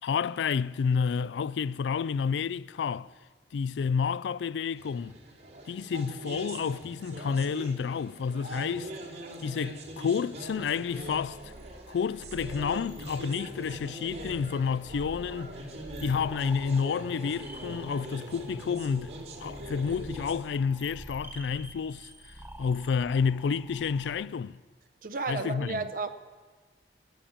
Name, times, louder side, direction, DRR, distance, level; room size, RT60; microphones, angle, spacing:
voice 1, 0.0-3.1 3.5-5.2 5.7-8.9 9.4-11.5 11.9-15.5 16.0-19.1 19.4-22.1 22.6-24.6 25.3-25.9, left 6 dB, 80° left, 0.3 m, -30 dB
sound 1, 4.8-20.4, right 1 dB, 70° right, 2.4 m, -42 dB
sound 2, 10.4-24.3, right 1 dB, 10° right, 0.8 m, -48 dB
voice 2, 25.0-26.1, right 3 dB, 50° right, 0.7 m, -32 dB
15.0 x 8.6 x 8.8 m
head